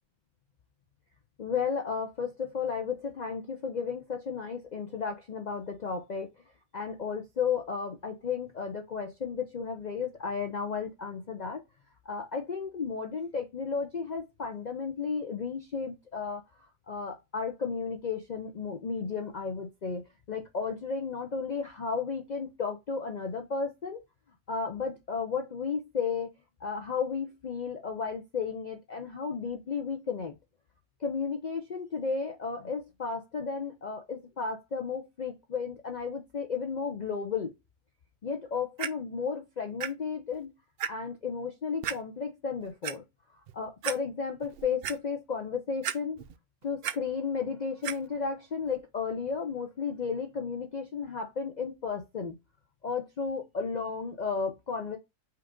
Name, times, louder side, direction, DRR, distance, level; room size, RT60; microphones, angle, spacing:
voice 1, 1.4-6.3 6.7-11.6 12.1-16.4 16.9-24.0 24.5-26.3 26.6-30.3 31.0-37.5 38.2-40.5 40.9-43.0 43.5-46.2 46.6-52.4 52.8-55.0, left 5 dB, 85° left, 0.3 m, -33 dB
Clock, 38.8-38.9 39.8-39.9 40.3-40.4 40.8-40.9 41.8-42.0 42.6-42.9 43.5-43.6 43.8-44.0 44.4-45.0 45.8-46.4 46.6-47.0 47.8-48.0 48.7-48.8, right 9 dB, 90° right, 0.5 m, -33 dB
5.6 x 2.5 x 3.6 m
omnidirectional pair, 1.5 m